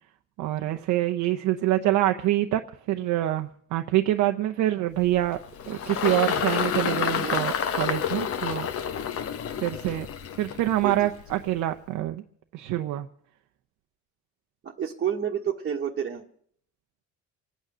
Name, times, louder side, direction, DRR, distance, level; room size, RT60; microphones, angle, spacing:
voice 1, 0.4-2.6 2.9-5.4 5.7-8.7 9.6-10.1 10.4-12.2 12.5-13.1, right 14 dB, 85° right, 6 dB, 0.8 m, -25 dB
Engine, 5.0-11.6, left 8 dB, 50° left, 1.0 m, -29 dB
voice 2, 14.6-16.2, right 9 dB, 35° right, -1 dB, 1.3 m, -29 dB
25.0 x 9.3 x 6.1 m, 0.64 s
cardioid pair, 135°, 30 cm